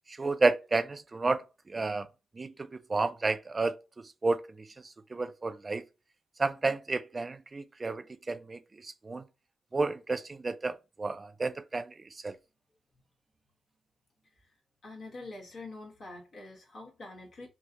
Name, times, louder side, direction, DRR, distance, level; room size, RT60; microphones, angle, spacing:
voice 1, 0.1-2.1 2.4-4.4 5.1-5.8 6.4-9.2 9.7-11.9 12.2-12.3, right 3 dB, 35° right, 0.3 m, -31 dB
voice 2, 14.8-17.5, left 2 dB, 65° left, 1.2 m, -45 dB
3.0 x 2.6 x 2.6 m
supercardioid pair, 50°, 0 cm